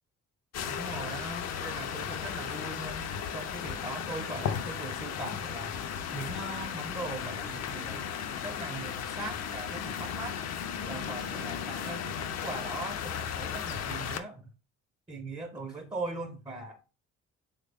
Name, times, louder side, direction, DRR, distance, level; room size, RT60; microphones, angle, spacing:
sound 1, 0.5-14.2, left 8 dB, 55° left, 0.5 m, -35 dB
voice 1, 0.7-5.8 6.1-8.1 8.4-10.4 10.9-14.5 15.1-16.8, right 2 dB, 15° right, 0.6 m, -40 dB
3.4 x 2.2 x 3.4 m
supercardioid pair, 65°, 33 cm